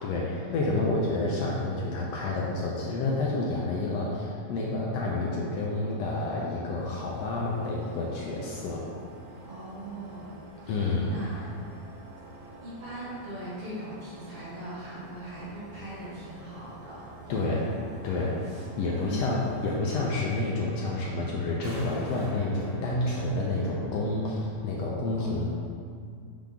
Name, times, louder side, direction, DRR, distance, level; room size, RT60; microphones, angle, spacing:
voice 1, 0.0-8.9 10.7-11.2 17.3-17.7 18.0-18.4 18.8-25.5, left 2 dB, 80° left, -3 dB, 1.5 m, -29 dB
sound 1, 6.8-19.8, right 2 dB, 85° right, 2.5 m, -48 dB
voice 2, 9.5-10.8 11.1-11.6 12.6-17.6 18.4-18.6 19.0-19.3 25.1-25.4, equal, 60° right, -8 dB, 1.7 m, -41 dB
sound 2, 20.7-24.7, equal, 35° right, 1.4 m, -45 dB
7.3 x 3.8 x 3.5 m, 2.2 s
omnidirectional pair, 3.5 m